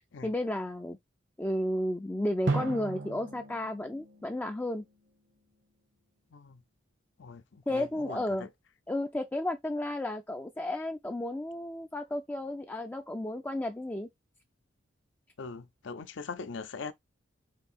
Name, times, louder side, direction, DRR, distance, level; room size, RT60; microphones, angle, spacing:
voice 1, 0.2-1.0 1.4-4.8 7.7-8.5 8.9-14.1, left 1 dB, 10° left, 0.4 m, -33 dB
Drum, 2.5-5.2, right 3 dB, 65° right, 1.1 m, -36 dB
voice 2, 7.2-8.5 15.4-16.9, left 4 dB, 70° left, 0.5 m, -41 dB
4.5 x 2.7 x 4.2 m
head